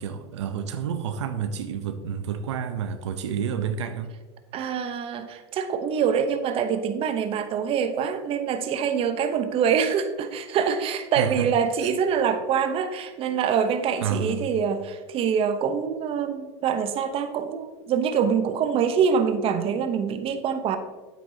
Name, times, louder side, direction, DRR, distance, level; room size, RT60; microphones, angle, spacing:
voice 1, 0.0-4.1 11.2-11.5 11.8-11.9 14.0-14.5, right 7 dB, 90° right, 9 dB, 0.6 m, -29 dB
voice 2, 4.5-20.8, right 7 dB, 40° right, 9 dB, 0.9 m, -25 dB
9.2 x 8.1 x 2.8 m, 1.3 s
supercardioid pair, 110°, 14 cm